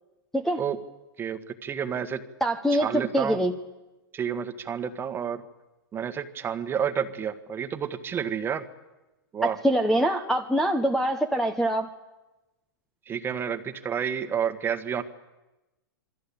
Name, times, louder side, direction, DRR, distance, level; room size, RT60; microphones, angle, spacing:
voice 1, 1.2-2.2 2.8-3.4 4.1-5.4 5.9-8.6 9.3-9.6 13.1-15.0, right 7 dB, 15° right, 9 dB, 1.7 m, -30 dB
voice 2, 2.4-3.5 9.4-11.9, right 1 dB, ahead, 8 dB, 1.2 m, -24 dB
27.0 x 23.0 x 8.7 m, 1.1 s
hypercardioid pair, 140°, 13 cm